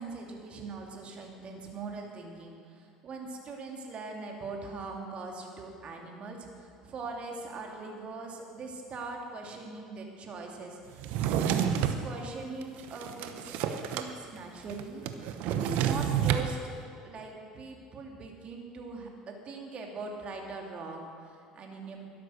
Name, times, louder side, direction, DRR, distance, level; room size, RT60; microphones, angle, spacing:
voice 1, 0.0-15.0 15.5-16.7 17.0-22.1, right 3 dB, 40° right, 1 dB, 2.4 m, -41 dB
Drawer open or close, 11.0-12.0 12.6-14.1 14.4-14.5 14.7-16.5, right 9 dB, 60° right, 0.9 m, -29 dB
12.5 x 11.0 x 6.3 m, 2.4 s
hypercardioid pair, 70°, 3 cm